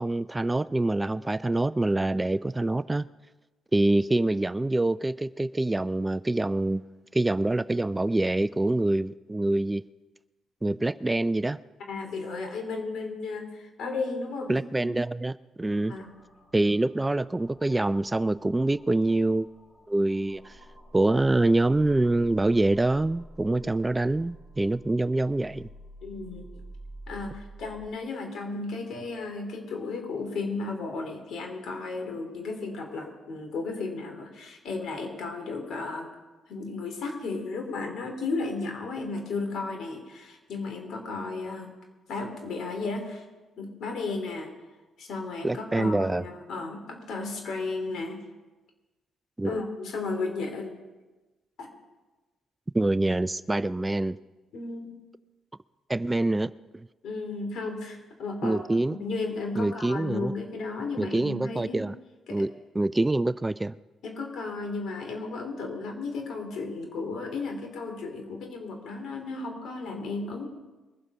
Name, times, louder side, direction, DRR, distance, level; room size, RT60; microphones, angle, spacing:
voice 1, 0.0-3.0 3.7-9.8 10.6-11.6 14.5-15.9 16.5-19.5 19.9-20.6 20.9-25.7 45.4-46.2 49.4-49.6 52.7-54.2 55.9-56.9 58.4-59.0 59.6-60.3 61.0-61.9 62.3-63.7, right 2 dB, 15° right, 16 dB, 0.3 m, -25 dB
voice 2, 11.9-14.9 15.9-16.1 23.5-23.6 26.0-26.5 27.1-36.1 36.5-41.7 42.1-43.2 43.6-44.5 45.0-48.2 49.4-50.7 51.6-51.7 54.5-55.0 57.0-58.6 59.0-61.9 62.3-62.4 64.0-70.5, left 3 dB, 70° left, 4 dB, 3.1 m, -34 dB
sound 1, 15.6-27.9, right 1 dB, 35° left, 5.9 m, -49 dB
22.0 x 7.9 x 5.5 m, 1.2 s
cardioid pair, 90°, 0 cm